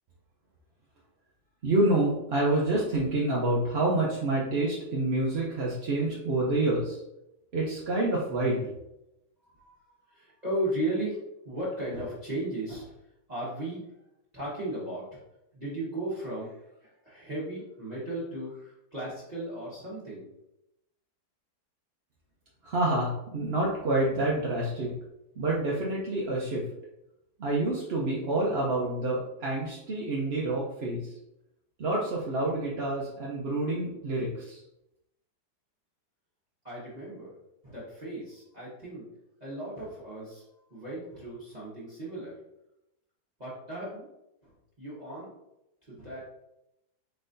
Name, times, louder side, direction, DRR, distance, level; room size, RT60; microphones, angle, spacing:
voice 1, 1.6-7.0 7.5-8.6 22.6-24.9 25.4-26.6 27.4-31.0 31.8-34.6, right 2 dB, 55° right, -5 dB, 0.7 m, -28 dB
voice 2, 9.4-11.2 11.4-12.9 13.3-13.8 14.3-15.2 15.5-20.3 36.6-37.3 37.6-39.1 39.4-40.4 40.7-42.3 43.4-44.1 44.4-45.3 45.9-46.2, right 1 dB, 25° right, -9 dB, 1.2 m, -36 dB
4.5 x 4.1 x 2.6 m, 0.87 s
omnidirectional pair, 1.9 m